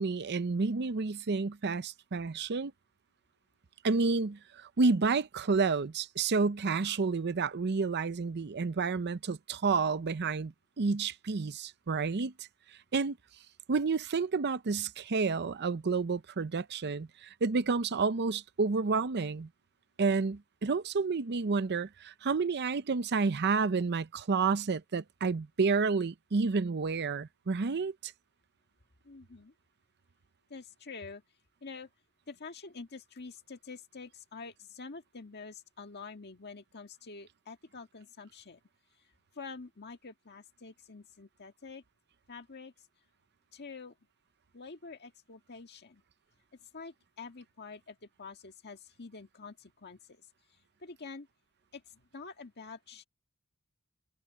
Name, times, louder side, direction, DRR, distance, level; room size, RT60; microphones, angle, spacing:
voice 1, 0.0-2.7 3.8-12.5 12.9-13.2 13.7-19.5 20.0-28.1, right 4 dB, 50° right, 0.6 m, -30 dB
voice 2, 29.0-29.5 30.5-31.2 31.6-31.9 32.3-38.6 39.0-39.1 39.3-41.8 42.3-42.7 43.5-44.0 44.5-46.0 46.5-50.3 50.8-51.3 51.7-53.1, left 4 dB, 50° left, 1.7 m, -47 dB
head